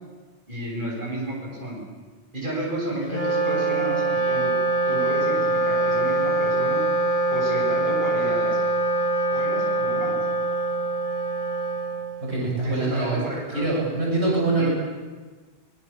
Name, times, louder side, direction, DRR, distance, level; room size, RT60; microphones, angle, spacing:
voice 1, 0.5-1.8 2.3-4.5 4.9-6.8 7.3-8.6 9.3-10.2 12.6-13.7 14.2-14.7, right 1 dB, 50° right, -4 dB, 7.7 m, -32 dB
Wind instrument woodwind instrument, 3.0-12.6, right 2 dB, 65° left, 5.8 m, -24 dB
voice 2, 12.2-13.2 13.5-14.7, right 2 dB, 80° right, -4 dB, 7.8 m, -24 dB
25.0 x 22.0 x 7.3 m, 1.4 s
omnidirectional pair, 1.1 m